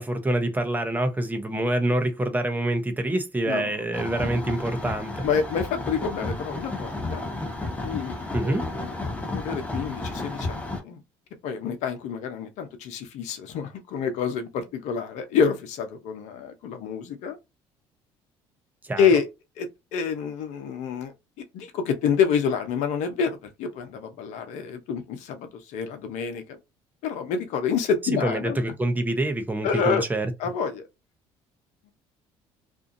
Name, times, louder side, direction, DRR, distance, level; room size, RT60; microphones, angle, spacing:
voice 1, 0.0-5.3 8.3-8.7 18.8-19.1 28.2-30.3, right 1 dB, 15° right, 0.8 m, -26 dB
sound 1, 3.9-10.8, left 2 dB, 15° left, 1.1 m, -32 dB
voice 2, 5.2-7.2 7.7-9.0 9.3-11.0 11.4-17.4 19.0-19.3 19.6-21.1 21.5-26.4 27.0-28.6 29.6-30.0 30.4-30.8, left 6 dB, 70° left, 0.8 m, -27 dB
2.7 x 2.4 x 2.6 m
supercardioid pair, 70°, 12 cm